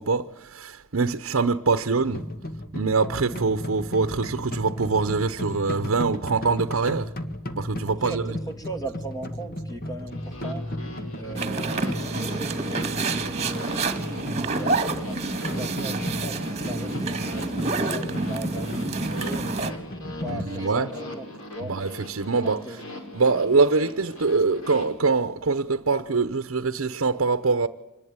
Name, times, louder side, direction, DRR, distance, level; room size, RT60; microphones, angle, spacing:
voice 1, 0.0-2.2 2.7-7.1 7.5-8.2 20.2-20.9 21.7-22.6 23.1-27.7, right 4 dB, 70° right, 0.8 m, -24 dB
sound 1, 2.0-20.4, left 1 dB, 45° left, 1.8 m, -35 dB
voice 2, 7.9-10.7 11.2-13.7 14.2-19.8 20.2-21.3 21.5-21.7 22.4-22.8, right 2 dB, 15° left, 2.5 m, -38 dB
sound 2, 10.1-24.8, left 1 dB, 90° left, 5.4 m, -41 dB
sound 3, 11.4-19.7, right 3 dB, 30° right, 1.9 m, -28 dB
25.5 x 19.5 x 9.7 m
head